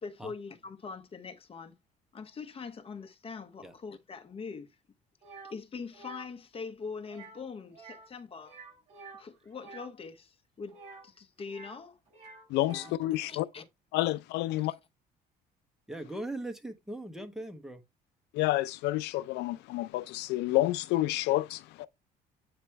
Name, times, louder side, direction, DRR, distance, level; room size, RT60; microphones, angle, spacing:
voice 1, 0.0-1.8 2.1-4.8 5.4-8.6 9.1-12.0 12.7-13.7, left 5 dB, 35° left, 1.0 m, -43 dB
sound 1, 5.2-5.5 5.9-6.3 7.0-7.4 7.7-8.1 8.4-9.9 10.7-11.8 12.1-13.0, right 4 dB, 40° right, 5.2 m, -49 dB
voice 2, 12.5-13.4 13.9-14.7 18.3-21.9, left 17 dB, 85° left, 0.4 m, -29 dB
voice 3, 15.9-17.8, right 1 dB, 5° right, 1.2 m, -39 dB
8.6 x 3.0 x 4.5 m
cardioid pair, 110°, 17 cm